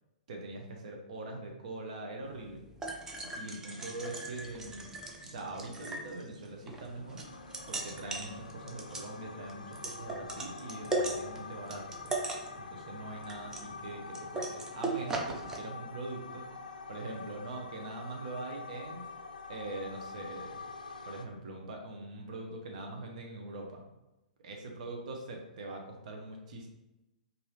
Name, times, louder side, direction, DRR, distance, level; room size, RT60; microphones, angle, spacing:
voice 1, 0.3-2.6 3.4-4.9 5.2-7.2 7.7-12.1 12.6-19.0 19.5-20.6 21.0-23.9 24.4-26.7, right 2 dB, 55° right, 1 dB, 0.7 m, -42 dB
sound 1, 2.2-15.6, right 2 dB, 10° right, 0.6 m, -39 dB
sound 2, 6.8-21.3, left 4 dB, 75° left, 0.4 m, -46 dB
4.6 x 2.6 x 3.1 m, 0.97 s
figure-of-eight pair, 110°, 5 cm